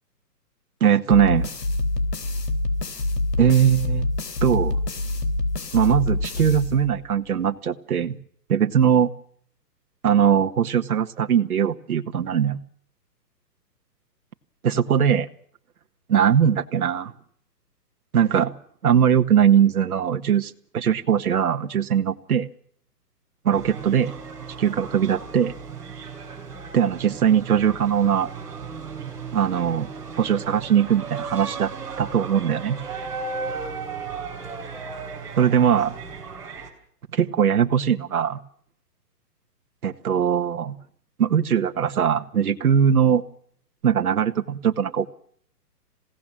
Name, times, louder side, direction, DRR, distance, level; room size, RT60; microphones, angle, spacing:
voice 1, 0.8-1.5 3.4-4.1 4.4-4.8 5.7-8.2 8.5-9.1 10.0-12.6 14.6-15.3 16.1-17.1 18.1-18.5 18.8-22.5 23.4-24.1 24.6-25.5 26.7-28.3 29.3-29.9 30.2-31.7 32.0-32.8 35.4-36.0 37.1-38.4 39.8-40.7 41.2-43.2 43.8-45.1, right 8 dB, 60° right, 6 dB, 1.6 m, -20 dB
sound 1, 1.1-7.2, left 2 dB, 75° left, 3.4 m, -26 dB
sound 2, 23.5-36.7, right 5 dB, 5° right, 3.4 m, -35 dB
27.0 x 17.5 x 7.5 m, 0.63 s
hypercardioid pair, 170°, 49 cm